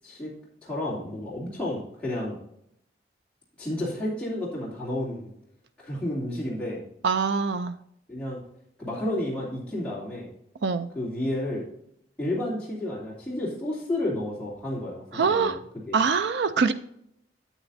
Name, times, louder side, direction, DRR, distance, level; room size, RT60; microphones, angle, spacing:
voice 1, 0.6-2.4 3.6-5.3 5.8-6.8 8.1-8.4 8.8-10.3 10.9-11.6 12.2-15.5 15.9-16.0, left 1 dB, 5° left, -8 dB, 2.7 m, -31 dB
voice 2, 7.0-7.7 10.6-10.9 15.1-15.6 15.9-16.7, right 5 dB, 70° right, 10 dB, 0.4 m, -24 dB
9.0 x 8.9 x 2.6 m, 0.74 s
head